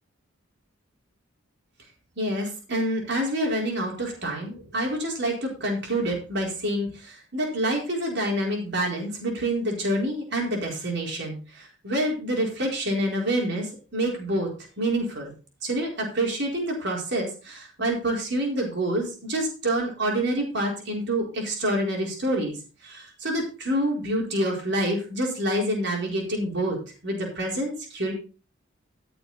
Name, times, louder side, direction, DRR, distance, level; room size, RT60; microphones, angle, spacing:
voice 1, 2.2-14.5 14.8-15.3 15.6-22.6 22.8-26.8 27.0-28.1, right 1 dB, 55° right, 0 dB, 4.4 m, -27 dB
14.5 x 7.0 x 4.1 m, 0.35 s
head